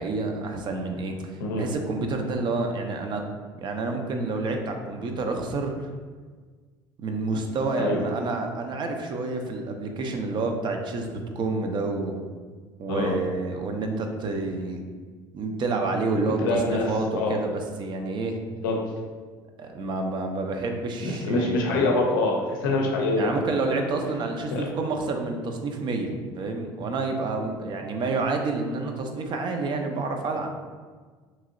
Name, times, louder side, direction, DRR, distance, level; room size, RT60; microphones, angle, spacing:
voice 1, 0.0-3.2 3.6-5.9 7.0-12.2 12.8-14.8 15.3-18.4 19.6-21.8 23.2-30.5, right 3 dB, 45° right, 4 dB, 0.5 m, -29 dB
voice 2, 16.4-16.9 17.1-17.4 18.6-18.8 21.0-23.5 24.5-24.6, left 2 dB, 90° left, 0 dB, 0.5 m, -25 dB
2.9 x 2.7 x 2.5 m, 1.5 s
supercardioid pair, 85°, 11 cm